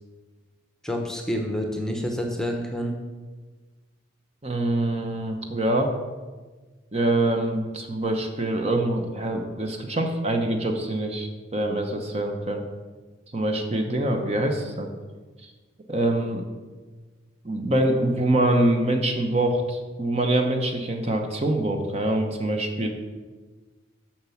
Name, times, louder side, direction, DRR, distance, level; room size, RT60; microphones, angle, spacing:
voice 1, 0.8-3.0, equal, 5° left, 2 dB, 0.9 m, -28 dB
voice 2, 4.4-5.9 6.9-12.6 13.3-14.9 15.9-16.4 17.4-22.9, right 1 dB, 30° right, 4 dB, 0.8 m, -24 dB
7.3 x 5.9 x 7.1 m, 1.3 s
head